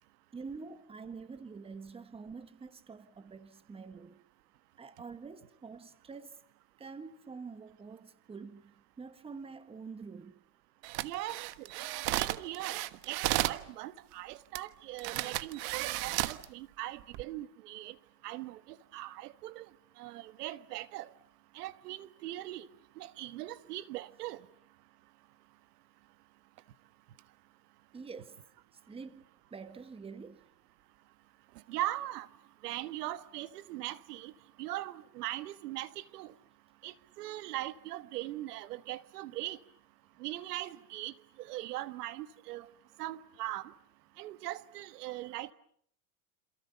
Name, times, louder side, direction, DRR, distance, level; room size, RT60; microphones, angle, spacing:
voice 1, 0.3-4.2 4.8-6.4 6.8-10.4 27.9-28.4 28.9-29.2 29.5-30.4, right 5 dB, 10° right, 1.4 m, -46 dB
sound 1, 10.8-13.6 14.5-14.6 15.0-16.4 17.0-17.2, right 18 dB, 55° right, 1.4 m, -33 dB
voice 2, 11.0-11.7 12.1-12.8 13.1-18.0 18.2-19.7 20.0-21.1 21.5-22.7 23.0-24.4 31.7-32.3 32.6-34.3 34.6-36.3 36.8-39.6 40.2-42.7 43.0-43.7 44.2-45.5, right 15 dB, 90° right, 1.7 m, -40 dB
28.5 x 27.5 x 7.0 m
supercardioid pair, 150°, 45 cm